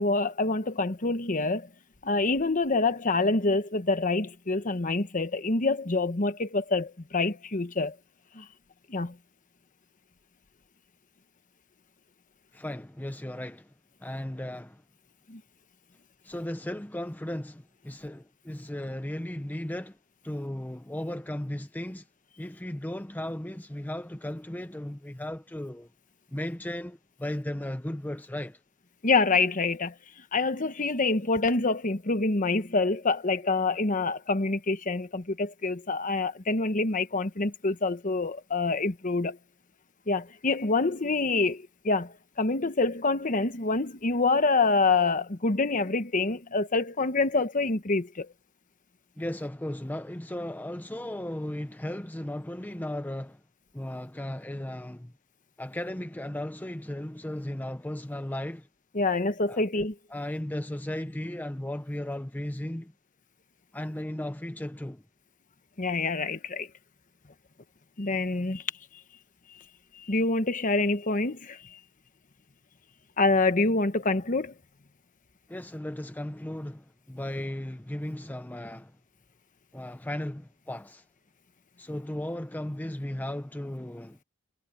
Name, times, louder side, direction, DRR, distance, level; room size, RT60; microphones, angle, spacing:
voice 1, 0.0-1.7 2.0-7.9 8.3-8.5 8.9-9.2 15.3-15.4 29.0-29.9 30.3-39.4 40.1-48.3 58.9-59.9 65.8-66.7 68.0-68.6 70.0-71.6 73.2-74.5, left 3 dB, 40° left, 1.1 m, -26 dB
voice 2, 12.5-13.7 14.0-14.8 16.2-20.0 20.2-22.1 22.4-25.9 26.3-28.6 49.2-53.4 53.7-55.1 55.6-58.7 59.5-59.6 60.1-62.9 63.7-65.0 75.5-79.0 79.7-81.0 81.8-84.2, left 1 dB, 10° left, 0.6 m, -36 dB
head